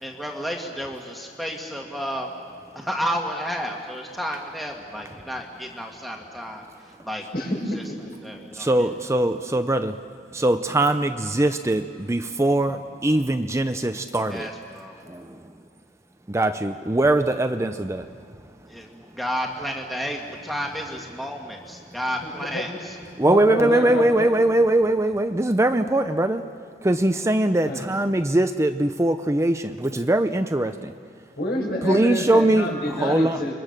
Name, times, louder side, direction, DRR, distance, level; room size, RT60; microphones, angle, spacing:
voice 1, 0.0-2.4 2.8-6.6 7.0-7.2 8.2-8.9 14.3-15.0 18.7-23.0, equal, ahead, 0 dB, 1.7 m, -31 dB
voice 2, 7.3-7.8 22.2-22.6 23.2-24.3 27.6-27.8 31.4-33.5, left 1 dB, 55° left, -2 dB, 6.7 m, -28 dB
voice 3, 8.5-10.0 10.3-14.5 15.1-15.4 16.3-18.1 23.2-26.4 26.8-30.9 31.8-33.4, right 1 dB, 15° right, 8 dB, 0.6 m, -21 dB
30.0 x 23.5 x 6.6 m, 2.1 s
head